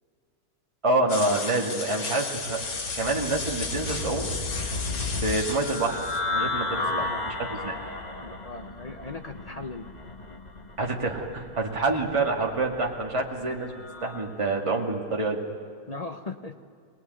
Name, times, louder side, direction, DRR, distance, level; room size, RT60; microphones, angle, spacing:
voice 1, 0.8-2.6 2.9-4.3 5.2-6.0 6.3-7.8 10.8-15.4, right 2 dB, 15° right, -1 dB, 2.2 m, -27 dB
sound 1, 1.1-6.2, left 4 dB, 80° left, 2.8 m, -34 dB
sound 2, 2.4-14.3, left 2 dB, 25° left, 1.2 m, -34 dB
voice 2, 6.7-7.3 8.2-9.9 15.9-16.6, left 3 dB, 50° left, 6 dB, 0.4 m, -38 dB
24.0 x 19.5 x 9.3 m, 2.3 s
omnidirectional pair, 2.2 m